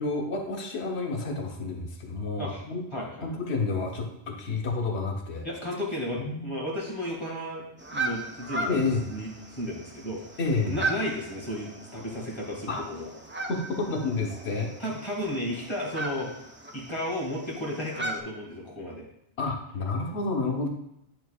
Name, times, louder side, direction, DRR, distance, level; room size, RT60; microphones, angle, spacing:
voice 1, 0.0-2.8 3.2-5.5 6.2-6.6 8.7-9.1 10.4-10.8 12.7-12.8 13.5-14.7 19.4-20.7, left 3 dB, 85° left, 2 dB, 1.2 m, -30 dB
voice 2, 2.9-3.3 5.4-7.7 7.9-8.8 9.1-10.4 10.7-13.1 14.8-16.3 16.7-19.1, left 1 dB, 25° left, -3 dB, 1.9 m, -33 dB
sound 1, 7.8-18.2, right 2 dB, 20° right, 0.3 m, -37 dB
10.5 x 4.4 x 2.3 m, 0.81 s
omnidirectional pair, 1.1 m